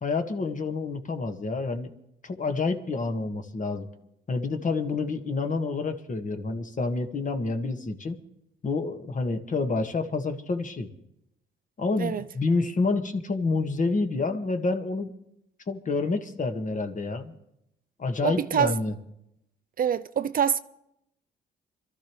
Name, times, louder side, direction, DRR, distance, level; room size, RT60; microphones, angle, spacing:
voice 1, 0.0-1.9 2.2-3.9 4.3-8.2 8.6-10.9 11.8-15.1 15.7-17.3 18.0-18.9, left 3 dB, 40° left, 1.6 m, -28 dB
voice 2, 18.2-18.7 19.8-20.6, right 8 dB, 45° right, 0.4 m, -25 dB
26.0 x 13.5 x 3.1 m
cardioid pair, 90°, 20 cm